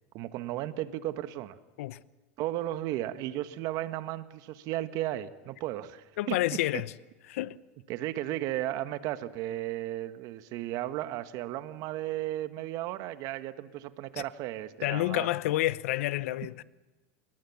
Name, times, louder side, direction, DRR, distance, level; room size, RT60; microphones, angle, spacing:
voice 1, 0.1-1.6 2.4-6.8 7.9-15.3, right 14 dB, 55° right, 1.6 m, -35 dB
voice 2, 6.2-6.9 7.3-7.6 14.8-16.6, left 16 dB, 75° left, 0.8 m, -29 dB
28.0 x 20.5 x 7.3 m
supercardioid pair, 105°, 7 cm